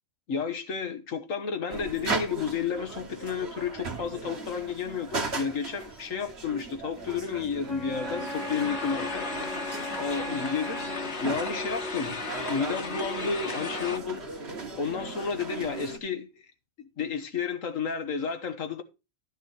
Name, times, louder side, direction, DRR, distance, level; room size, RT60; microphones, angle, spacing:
voice 1, 0.3-9.3 10.0-10.8 11.2-12.2 12.5-14.2 14.8-16.3 16.8-18.8, left 6 dB, 85° left, 1.8 m, -31 dB
sound 1, 1.7-16.0, right 3 dB, 55° right, 1.8 m, -38 dB
Wind instrument woodwind instrument, 7.6-11.2, left 1 dB, 20° left, 1.2 m, -38 dB
sound 2, 7.9-14.0, left 3 dB, 60° left, 1.9 m, -36 dB
13.0 x 6.1 x 4.4 m
omnidirectional pair, 1.3 m